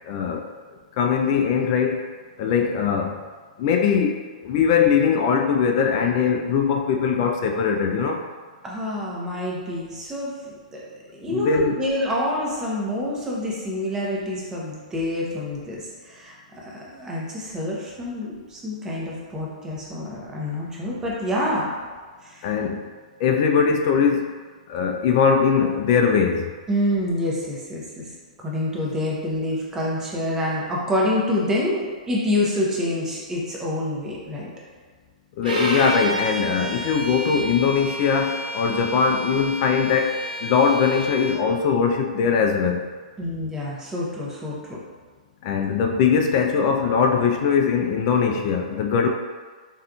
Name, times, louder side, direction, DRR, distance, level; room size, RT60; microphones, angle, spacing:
voice 1, 0.0-0.5 1.0-2.1 2.4-3.2 3.6-8.2 11.2-11.8 22.4-22.8 23.2-24.3 24.7-26.5 35.4-42.8 45.4-49.1, left 6 dB, 45° left, 3 dB, 0.4 m, -21 dB
voice 2, 8.6-10.3 10.7-10.8 11.2-21.7 22.2-22.5 26.7-28.0 28.4-34.5 43.2-44.6, left 1 dB, 15° right, -4 dB, 0.7 m, -27 dB
Bowed string instrument, 35.4-41.4, equal, 80° right, 0.7 m, -30 dB
3.4 x 2.5 x 2.3 m, 1.4 s
hypercardioid pair, 120°, 4 cm